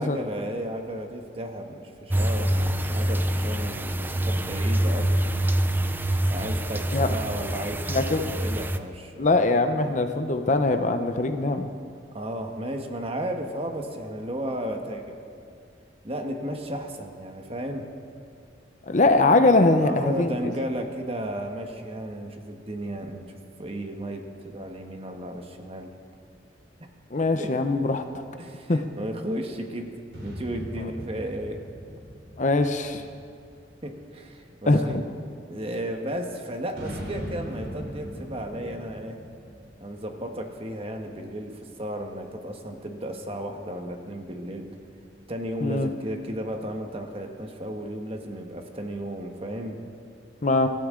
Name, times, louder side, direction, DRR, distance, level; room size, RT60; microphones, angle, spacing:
voice 1, 0.0-5.3 6.3-9.3 9.8-9.9 12.1-15.2 16.0-17.9 19.8-25.9 27.4-27.6 28.4-30.0 30.2-31.6 33.8-35.0 35.5-39.2 39.8-44.7 45.3-49.8, right 1 dB, 30° right, 4 dB, 1.3 m, -34 dB
sound 1, 2.1-8.8, right 1 dB, 10° right, 0.5 m, -25 dB
voice 2, 7.9-8.2 9.2-11.7 18.9-20.4 27.1-28.0 28.7-28.8 32.4-33.0 34.7-34.8 45.6-45.9 50.4-50.7, left 2 dB, 40° left, 7 dB, 0.7 m, -22 dB
sound 2, 30.1-33.8 36.7-40.5, equal, 85° right, 3.9 m, -39 dB
24.0 x 14.0 x 3.8 m, 2.3 s
head